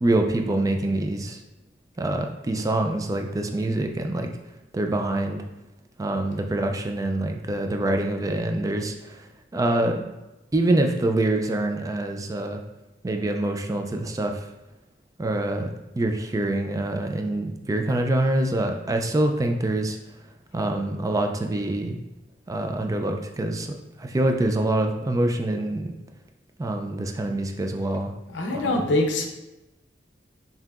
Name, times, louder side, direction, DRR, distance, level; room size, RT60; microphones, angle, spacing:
voice 1, 0.0-1.4 2.0-4.3 4.7-5.4 6.0-9.3 9.5-10.1 10.5-12.6 13.0-14.5 15.2-20.0 20.5-22.0 22.5-23.7 24.0-25.9 26.6-28.1 28.5-28.9, right 1 dB, 20° right, 4 dB, 0.3 m, -25 dB
voice 2, 28.3-29.3, left 2 dB, 85° left, 3 dB, 0.6 m, -23 dB
5.6 x 2.7 x 2.4 m, 1.0 s
head